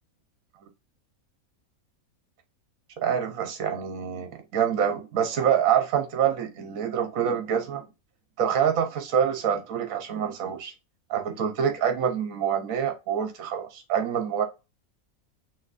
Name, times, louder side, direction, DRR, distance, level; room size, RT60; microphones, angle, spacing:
voice 1, 3.0-7.9 8.4-10.7 11.1-14.4, right 8 dB, 70° right, 1.3 m, -26 dB
5.7 x 3.0 x 2.5 m
omnidirectional pair, 1.5 m